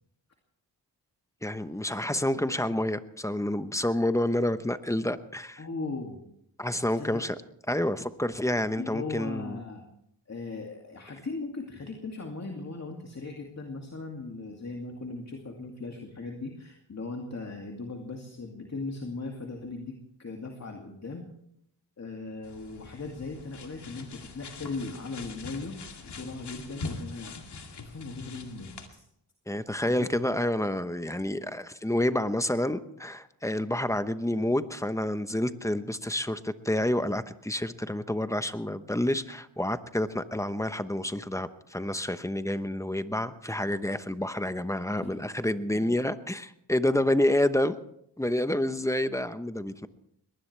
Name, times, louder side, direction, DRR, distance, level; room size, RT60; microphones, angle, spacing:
voice 1, 1.4-5.6 6.6-7.4 7.7-9.6 29.5-47.8 48.2-49.9, left 1 dB, 5° left, 11 dB, 1.0 m, -29 dB
voice 2, 5.6-6.2 6.9-7.2 8.8-9.9 10.3-21.2 22.0-29.0 29.8-30.1 44.9-45.1 45.8-46.0, left 3 dB, 35° left, 1 dB, 2.5 m, -38 dB
sound 1, 22.4-28.9, left 3 dB, 65° left, 2.4 m, -43 dB
21.5 x 19.5 x 3.4 m, 0.73 s
cardioid pair, 85°, 43 cm